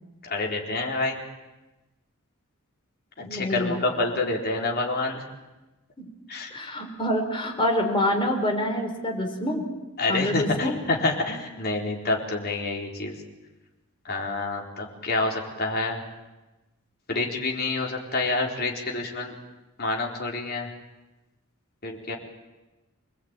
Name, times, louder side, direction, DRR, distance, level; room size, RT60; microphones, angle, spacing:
voice 1, 0.2-1.2 3.2-5.2 6.3-6.5 10.0-13.2 14.0-16.0 17.1-19.3 19.8-20.7 21.8-22.1, left 2 dB, 45° left, 0 dB, 4.3 m, -28 dB
voice 2, 3.2-3.8 6.5-9.6 10.1-10.7, left 1 dB, 25° left, 2 dB, 4.6 m, -26 dB
26.0 x 20.5 x 9.1 m, 1.1 s
head